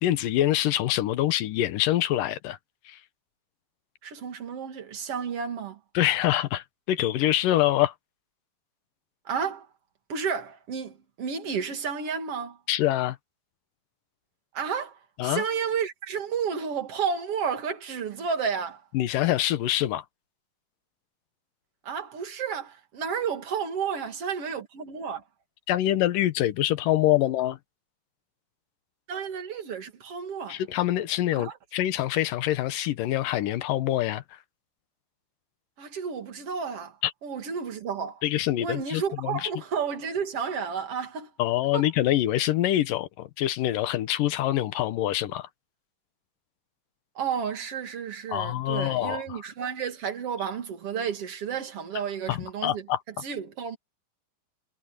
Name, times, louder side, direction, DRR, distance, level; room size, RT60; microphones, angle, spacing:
voice 1, 0.0-2.6 2.9-3.0 5.9-7.9 12.7-13.2 15.2-15.4 18.9-20.0 25.7-27.6 30.5-34.4 37.0-37.1 38.2-39.5 41.4-45.5 48.3-49.4 52.3-53.0, left 13 dB, 80° left, 2.7 m, -25 dB
voice 2, 4.0-5.8 9.2-9.7 10.1-12.6 14.5-18.9 21.8-25.2 29.1-30.6 31.3-31.6 35.8-37.0 37.2-38.2 38.6-41.3 41.7-41.9 47.1-52.9 53.2-53.8, right 6 dB, 45° right, 3.1 m, -31 dB
omnidirectional pair, 3.9 m